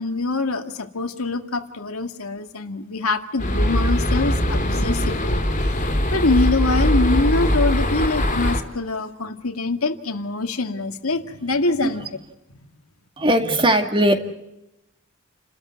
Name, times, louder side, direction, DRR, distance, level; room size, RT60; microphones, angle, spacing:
voice 1, 0.0-5.7 6.1-12.1, left 3 dB, 85° left, 6 dB, 2.0 m, -24 dB
sound 1, 3.4-8.6, left 1 dB, 35° left, 3.2 m, -21 dB
voice 2, 13.2-14.1, right 1 dB, 25° right, 5 dB, 2.2 m, -19 dB
30.0 x 13.5 x 9.5 m, 0.89 s
head